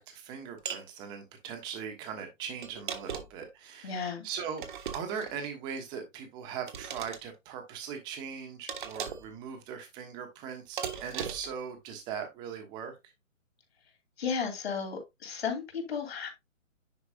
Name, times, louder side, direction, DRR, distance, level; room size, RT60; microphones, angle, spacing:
voice 1, 0.0-4.7 4.9-12.9, right 7 dB, 10° right, 1.1 m, -40 dB
sound 1, 0.7-0.9 2.6-3.5 4.6-5.4 6.7-7.2 8.7-9.3 10.8-11.6, right 7 dB, 35° right, 1.2 m, -38 dB
voice 2, 3.8-4.2 14.2-16.3, left 6 dB, 50° left, 3.2 m, -34 dB
10.0 x 4.6 x 2.8 m
hypercardioid pair, 155°, 40 cm